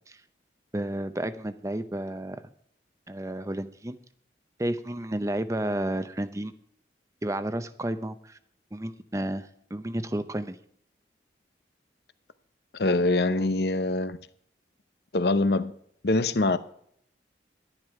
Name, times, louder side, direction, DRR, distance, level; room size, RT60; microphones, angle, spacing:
voice 1, 0.7-2.4 3.1-4.0 4.6-6.5 7.2-8.4 8.7-10.6, right 1 dB, 15° right, 0.6 m, -31 dB
voice 2, 12.8-14.2 15.1-15.7 16.0-16.6, left 2 dB, 65° left, 0.8 m, -24 dB
11.5 x 11.0 x 4.7 m
head